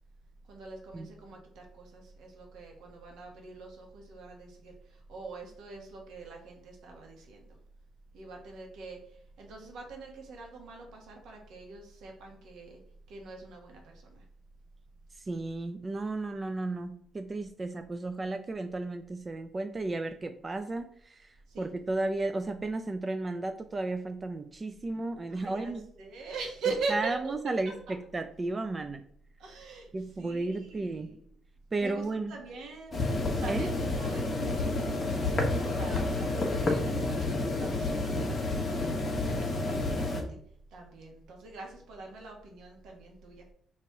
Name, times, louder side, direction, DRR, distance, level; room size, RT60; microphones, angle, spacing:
voice 1, 0.5-7.5 8.1-12.8 13.1-14.2 21.5-21.7 25.3-27.3 27.9-28.0 29.4-31.2 31.8-40.4 40.7-43.4, right 4 dB, 80° right, 1 dB, 1.1 m, -42 dB
voice 2, 15.3-20.9 21.6-25.8 26.9-29.1 29.9-31.1 31.7-32.3 33.5-33.7, right 2 dB, 30° right, 9 dB, 0.3 m, -33 dB
sound 1, 32.9-40.2, left 2 dB, 35° left, 1.0 m, -30 dB
3.0 x 2.9 x 4.5 m, 0.63 s
cardioid pair, 90°, 0 cm